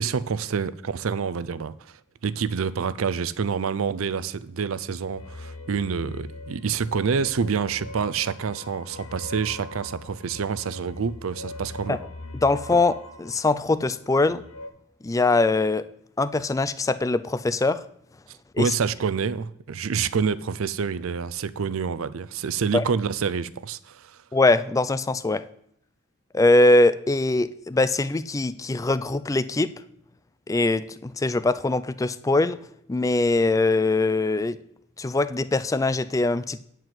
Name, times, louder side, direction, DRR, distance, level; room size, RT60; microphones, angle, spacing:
voice 1, 0.0-2.0 2.2-12.0 18.6-24.2, right 6 dB, 70° right, 0.5 m, -27 dB
sound 1, 5.0-14.7, left 2 dB, 90° left, 1.1 m, -41 dB
voice 2, 12.4-14.4 15.0-15.8 16.2-17.8 18.5-18.7 22.7-22.9 24.3-25.4 26.3-29.7 30.5-32.6 32.9-34.6 35.0-36.6, left 2 dB, 15° left, 0.3 m, -22 dB
9.5 x 4.6 x 7.7 m
head